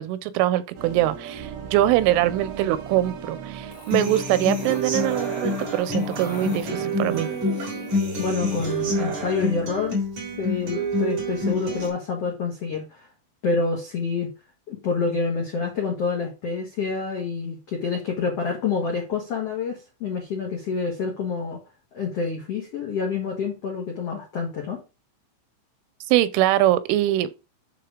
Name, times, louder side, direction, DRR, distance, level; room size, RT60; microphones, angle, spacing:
voice 1, 0.0-7.3 26.1-27.3, right 14 dB, 90° right, 3.2 m, -23 dB
sound 1, 0.8-7.6, right 7 dB, 65° right, 2.8 m, -40 dB
sound 2, 3.7-9.0, left 4 dB, 40° left, 1.6 m, -43 dB
Human voice / Acoustic guitar, 3.9-11.9, equal, 45° right, 4.2 m, -27 dB
voice 2, 8.2-13.1 13.4-14.3 14.7-21.6 21.9-24.8, left 4 dB, 80° left, 1.4 m, -27 dB
9.8 x 3.8 x 5.0 m
omnidirectional pair, 5.5 m